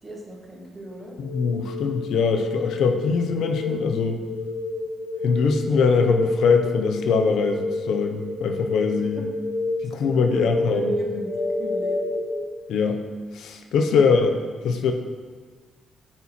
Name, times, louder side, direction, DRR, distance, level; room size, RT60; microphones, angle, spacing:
voice 1, 0.0-1.2 9.2-9.3 10.3-12.1 14.1-14.2, right 1 dB, 25° right, -1 dB, 1.3 m, -39 dB
sound 1, 1.1-12.3, left 2 dB, 55° left, 1.3 m, -29 dB
voice 2, 1.2-4.2 5.2-9.2 9.8-10.9 12.7-13.0 13.3-14.3 14.6-14.9, left 5 dB, 80° left, 5 dB, 0.7 m, -22 dB
8.5 x 4.4 x 4.3 m, 1.5 s
cardioid pair, 140°, 0 cm